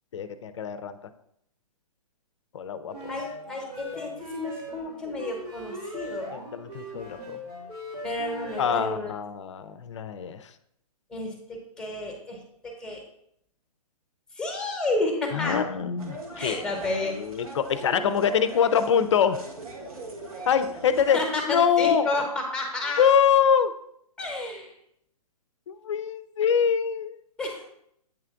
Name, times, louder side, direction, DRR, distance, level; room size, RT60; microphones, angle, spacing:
voice 1, 0.1-1.0 2.5-3.2 6.3-7.4 8.6-10.5 15.3-16.7 17.1-19.4 20.5-21.2 21.5-22.1 23.0-23.7 25.7-27.2, left 7 dB, 50° left, 12 dB, 0.5 m, -24 dB
sound 1, 2.9-9.0, equal, 80° right, 2.1 m, -39 dB
voice 2, 3.1-6.3 8.0-9.1 11.1-13.0 14.3-15.6 16.4-17.1 21.1-23.0 24.2-24.7 27.4-27.6, left 2 dB, 5° left, 1 dB, 1.0 m, -31 dB
sound 2, 16.0-21.2, right 2 dB, 65° right, 1.4 m, -40 dB
8.3 x 3.2 x 3.6 m, 0.74 s
figure-of-eight pair, 130°, 20 cm